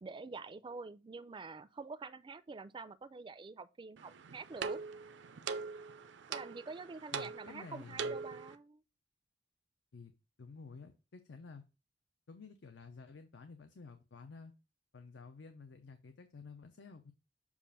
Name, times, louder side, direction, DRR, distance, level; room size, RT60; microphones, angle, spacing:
voice 1, 0.0-4.8 6.3-8.8, right 4 dB, 25° right, 0.4 m, -47 dB
sound 1, 4.0-8.6, right 5 dB, 85° right, 0.5 m, -42 dB
voice 2, 7.1-8.2 9.9-10.1 10.4-11.6 12.3-14.5 14.9-17.1, left 4 dB, 85° left, 0.6 m, -52 dB
7.1 x 2.5 x 5.4 m
head